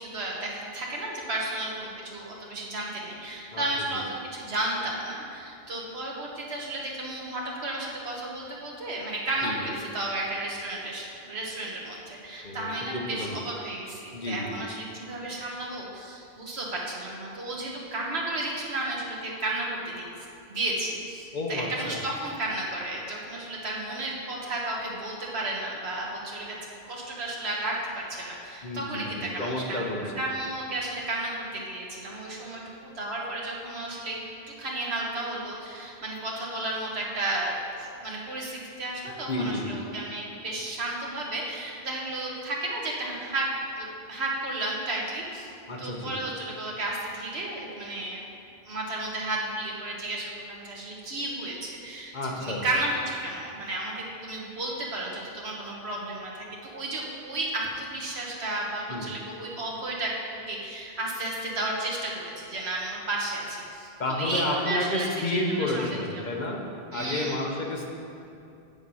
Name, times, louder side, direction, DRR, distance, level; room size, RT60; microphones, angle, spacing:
voice 1, 0.0-20.1 20.5-26.6 26.8-34.2 34.5-43.4 43.8-45.5 45.8-48.3 48.6-66.0 66.9-67.4, right 2 dB, 75° right, -2 dB, 1.7 m, -33 dB
voice 2, 12.4-13.4 14.1-14.6 21.3-22.0 28.6-30.3 39.3-39.8 45.7-46.1 52.1-52.6 58.9-59.0 64.0-66.6 66.9-67.9, left 1 dB, 45° left, 0 dB, 1.1 m, -31 dB
7.5 x 7.1 x 5.5 m, 2.6 s
omnidirectional pair, 1.1 m